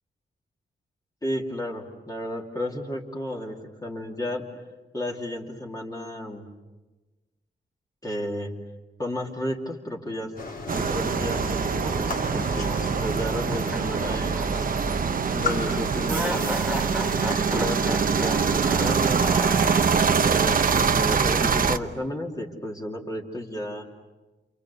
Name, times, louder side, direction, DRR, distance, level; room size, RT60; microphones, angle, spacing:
voice 1, 1.2-4.4 4.9-6.5 8.0-8.5 9.0-10.3 10.7-14.4 15.3-16.6 17.5-19.5 20.2-23.9, left 1 dB, 20° left, 0 dB, 2.7 m, -32 dB
sound 1, 10.4-17.8, left 4 dB, 50° left, 4.1 m, -37 dB
sound 2, 10.7-21.8, right 5 dB, 45° right, 0.9 m, -24 dB
sound 3, 13.5-14.8 15.1-15.2 16.1-20.4, right 1 dB, 5° right, 1.4 m, -34 dB
29.5 x 28.5 x 6.9 m, 1.2 s
wide cardioid pair, 180°, 19 cm